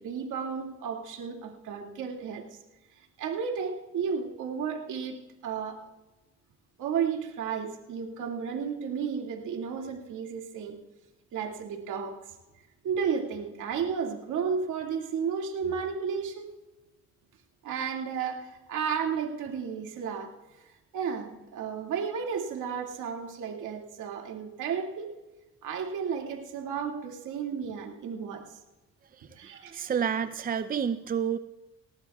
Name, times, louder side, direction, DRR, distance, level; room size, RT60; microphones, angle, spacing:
voice 1, 0.0-2.6 3.2-5.8 6.8-10.8 11.3-12.2 12.8-16.5 17.6-20.3 20.9-25.1 25.6-28.6 29.2-29.8, right 6 dB, 80° right, 1 dB, 2.3 m, -33 dB
voice 2, 29.2-31.4, right 7 dB, 30° right, 11 dB, 0.6 m, -30 dB
18.5 x 18.5 x 2.4 m, 1.1 s
cardioid pair, 90°, 30 cm